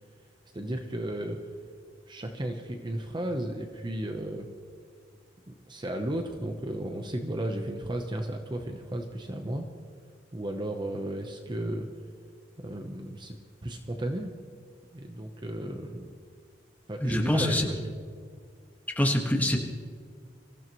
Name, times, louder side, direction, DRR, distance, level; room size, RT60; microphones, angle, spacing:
voice 1, 0.5-1.4 2.1-4.5 5.5-9.7 10.3-11.9 12.6-13.3 13.6-14.3 14.9-16.1 16.9-17.9, right 1 dB, 25° right, 4 dB, 0.9 m, -34 dB
voice 2, 17.0-17.7 18.9-19.6, left 1 dB, 10° left, 1 dB, 1.6 m, -25 dB
25.0 x 15.0 x 3.1 m, 2.1 s
head